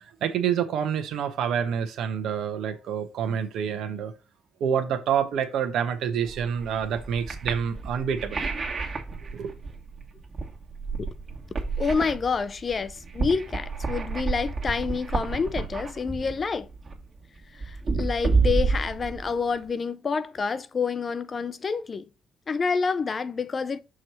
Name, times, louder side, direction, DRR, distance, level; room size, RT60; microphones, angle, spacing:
voice 1, 0.2-4.1 4.6-8.4 9.3-9.5, right 8 dB, 80° right, 1.1 m, -27 dB
sound 1, 6.3-19.7, right 4 dB, 40° right, 1.6 m, -30 dB
voice 2, 11.8-16.7 17.5-22.0 22.5-23.8, left 5 dB, 40° left, 0.5 m, -28 dB
6.3 x 3.1 x 5.5 m
cardioid pair, 90°, 0 cm